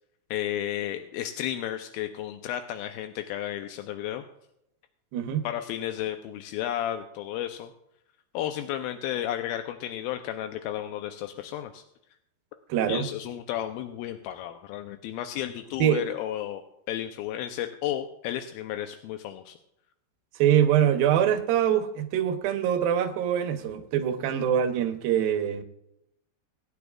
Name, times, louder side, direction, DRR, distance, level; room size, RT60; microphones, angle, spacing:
voice 1, 0.3-4.2 5.4-7.7 8.3-11.8 12.9-16.6 16.9-19.5, left 11 dB, 80° left, 6 dB, 2.3 m, -33 dB
voice 2, 5.1-5.4 12.7-13.1 15.8-16.0 20.4-25.6, right 10 dB, 70° right, 7 dB, 2.5 m, -24 dB
22.0 x 9.9 x 2.4 m, 0.79 s
omnidirectional pair, 4.8 m